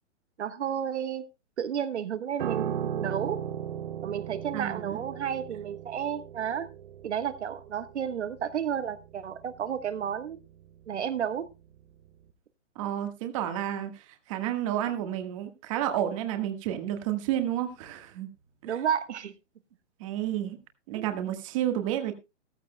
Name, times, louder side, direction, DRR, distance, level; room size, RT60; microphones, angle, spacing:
voice 1, 0.4-1.2 1.6-3.4 4.0-6.7 7.0-10.4 10.9-11.4 18.6-19.3 20.9-21.1, right 8 dB, 70° right, 1.3 m, -32 dB
Piano, 2.4-11.8 12.0-12.3, right 9 dB, 45° right, 0.9 m, -38 dB
voice 2, 4.5-5.0 12.7-18.3 18.7-18.8 20.0-20.6 20.9-22.1, right 11 dB, 25° right, 1.4 m, -31 dB
14.5 x 14.5 x 2.2 m
hypercardioid pair, 160°, 36 cm